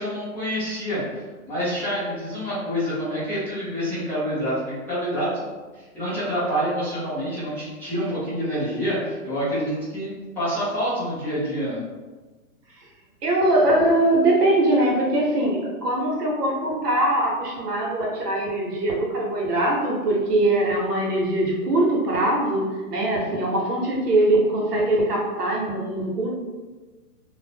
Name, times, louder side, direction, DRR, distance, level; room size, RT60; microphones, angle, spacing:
voice 1, 0.0-11.8, equal, 5° left, -15 dB, 0.7 m, -27 dB
voice 2, 13.2-26.3, right 1 dB, 80° right, -1 dB, 1.1 m, -22 dB
2.5 x 2.1 x 3.4 m, 1.3 s
hypercardioid pair, 150°, 46 cm